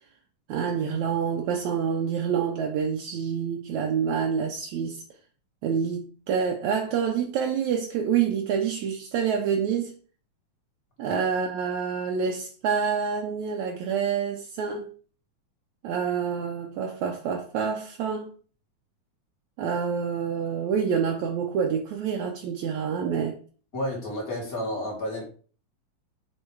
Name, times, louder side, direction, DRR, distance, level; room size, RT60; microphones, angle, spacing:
voice 1, 0.5-5.0 5.6-9.9 11.0-14.9 15.8-18.3 19.6-23.4, right 7 dB, 75° right, 2.0 m, -27 dB
voice 2, 23.7-25.3, equal, 30° left, 2.1 m, -31 dB
6.5 x 4.3 x 4.6 m
omnidirectional pair, 3.7 m